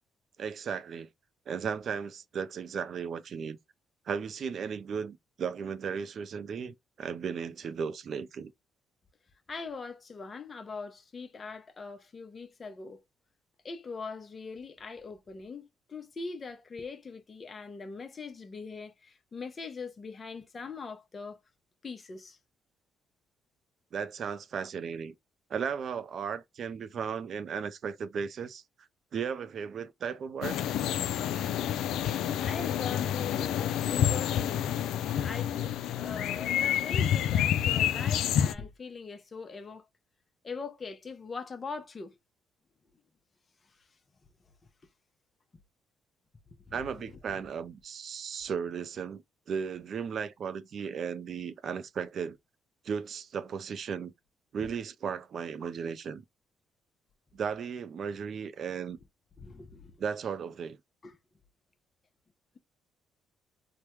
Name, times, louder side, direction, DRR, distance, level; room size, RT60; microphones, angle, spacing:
voice 1, 0.4-1.1 1.5-3.6 4.1-8.5 23.9-25.1 25.5-28.6 29.1-30.6 46.7-52.4 52.8-54.1 54.5-56.2 57.3-59.0 60.0-60.8, right 6 dB, 55° right, 0.4 m, -35 dB
voice 2, 9.5-13.0 13.6-21.4 21.8-22.4 32.4-34.9 35.2-39.9 40.4-42.2 43.7-43.9 46.7-47.4 54.6-54.7 59.4-60.0 61.0-61.2, left 4 dB, 35° left, 0.7 m, -41 dB
sound 1, 30.4-38.5, left 10 dB, 80° left, 0.3 m, -28 dB
3.3 x 2.1 x 3.0 m
cardioid pair, 95°, 0 cm